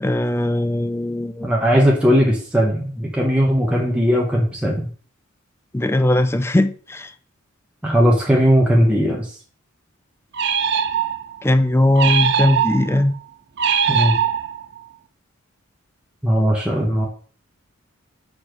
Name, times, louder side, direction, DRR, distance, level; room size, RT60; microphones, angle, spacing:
voice 1, 0.0-1.5 5.7-7.1 11.4-13.1, left 1 dB, 10° left, 0.4 m, -19 dB
voice 2, 1.4-4.9 7.8-9.3 13.9-14.1 16.2-17.1, equal, 5° right, 1.0 m, -18 dB
sound 1, 10.3-11.4 12.0-13.0 13.6-14.8, right 7 dB, 50° right, 0.6 m, -21 dB
4.9 x 4.3 x 6.0 m
head